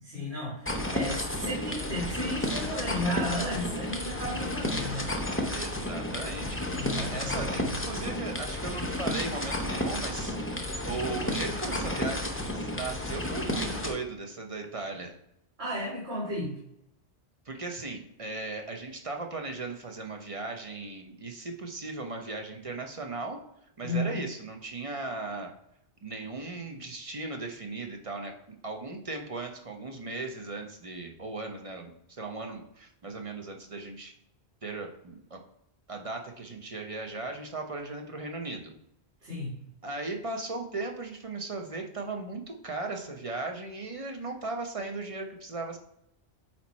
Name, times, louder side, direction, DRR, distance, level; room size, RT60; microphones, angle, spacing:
voice 1, 0.0-5.1 6.7-7.7 15.6-16.5 23.8-24.2 39.2-39.6, left 1 dB, 70° right, -7 dB, 2.3 m, -34 dB
sound 1, 0.7-13.9, left 1 dB, 15° left, 0.6 m, -32 dB
voice 2, 5.5-15.2 17.5-23.4 23.8-25.5 26.0-28.3 28.6-31.9 32.2-34.1 34.6-35.4 35.9-38.7 39.8-45.8, right 3 dB, 35° right, 3 dB, 0.8 m, -37 dB
8.7 x 3.0 x 4.1 m, 0.78 s
omnidirectional pair, 1.1 m